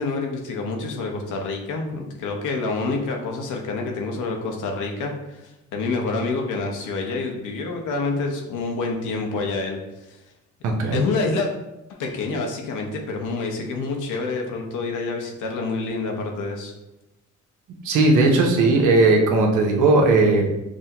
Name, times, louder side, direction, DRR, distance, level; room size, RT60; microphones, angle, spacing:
voice 1, 0.0-9.8 10.1-10.2 10.9-11.5 12.0-16.7, left 3 dB, 85° left, 2 dB, 0.9 m, -27 dB
voice 2, 10.6-11.0 17.8-20.4, right 3 dB, 85° right, 1 dB, 0.8 m, -17 dB
6.1 x 2.1 x 2.8 m, 0.94 s
cardioid pair, 90°, 30 cm